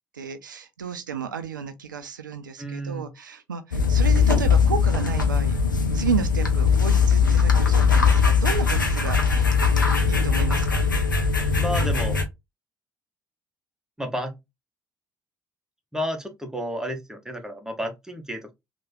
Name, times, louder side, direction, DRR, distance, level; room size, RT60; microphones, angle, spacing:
voice 1, 0.1-5.6 5.9-9.5 10.0-10.9, right 6 dB, 85° right, 0.4 m, -32 dB
voice 2, 2.6-3.1 11.6-12.2 14.0-14.3 15.9-18.5, equal, 5° right, 0.9 m, -31 dB
sound 1, 3.7-12.2, left 5 dB, 90° left, 0.4 m, -20 dB
3.2 x 2.2 x 2.6 m
figure-of-eight pair, 50°, 10 cm